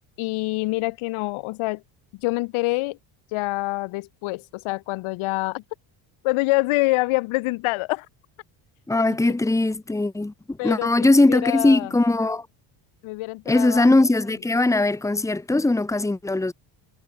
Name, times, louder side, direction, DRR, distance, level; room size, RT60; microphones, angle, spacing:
voice 1, 0.2-1.8 2.2-3.0 3.3-5.6 6.2-8.1 10.6-11.9 13.0-13.9, left 22 dB, 80° left, 7.6 m, -26 dB
voice 2, 8.9-12.5 13.5-16.5, left 2 dB, 5° left, 2.5 m, -20 dB
cardioid pair, 165°, 48 cm